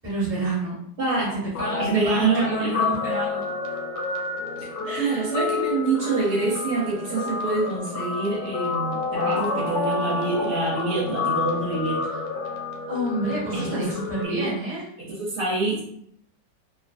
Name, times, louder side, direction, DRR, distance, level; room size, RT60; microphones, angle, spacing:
voice 1, 0.0-0.8 1.3-3.5 4.8-5.3 9.2-9.4 12.1-12.2 12.9-14.9, right 2 dB, 10° right, -8 dB, 0.8 m, -29 dB
voice 2, 1.0-1.4 1.8-2.7 4.6-4.7 4.9-12.0 13.5-13.9 14.2-14.5 15.0-15.8, right 3 dB, 65° right, -4 dB, 1.2 m, -26 dB
Guitar, 1.5-14.3, left 4 dB, 70° left, 1.0 m, -29 dB
2.8 x 2.4 x 2.4 m, 0.68 s
omnidirectional pair, 2.0 m